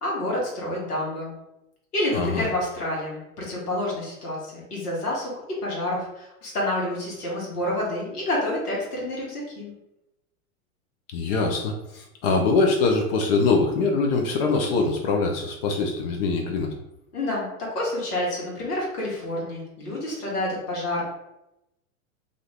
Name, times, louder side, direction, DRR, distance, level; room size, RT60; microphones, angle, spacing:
voice 1, 0.0-1.3 1.9-9.7 17.1-21.0, left 1 dB, 80° left, -4 dB, 1.3 m, -28 dB
voice 2, 11.1-16.7, left 3 dB, 40° left, 3 dB, 0.5 m, -23 dB
2.5 x 2.5 x 3.3 m, 0.88 s
hypercardioid pair, 100°, 45 cm